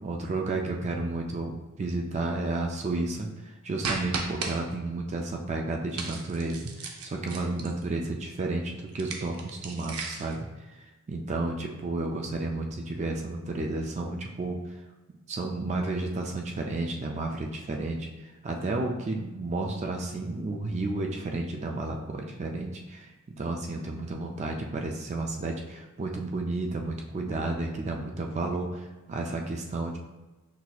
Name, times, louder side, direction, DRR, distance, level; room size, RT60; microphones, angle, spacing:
voice 1, 0.0-3.3 3.6-14.8 15.3-18.1 18.4-30.0, right 2 dB, 30° right, 1 dB, 0.3 m, -32 dB
sound 1, 3.8-4.5 5.9-7.8 8.9-10.4, right 4 dB, 85° right, 0.6 m, -35 dB
5.9 x 2.7 x 2.3 m, 1.1 s
head